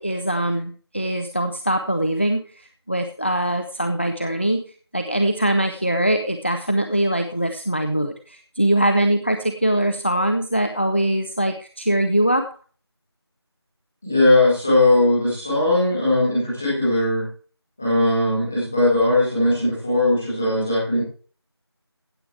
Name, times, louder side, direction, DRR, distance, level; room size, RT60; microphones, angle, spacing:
voice 1, 0.0-4.6 4.9-12.5, right 1 dB, 25° left, 8 dB, 0.6 m, -22 dB
voice 2, 14.0-17.3 17.8-21.0, left 2 dB, 5° left, -9 dB, 1.7 m, -19 dB
15.5 x 8.4 x 3.3 m, 0.41 s
figure-of-eight pair, 175°, 14 cm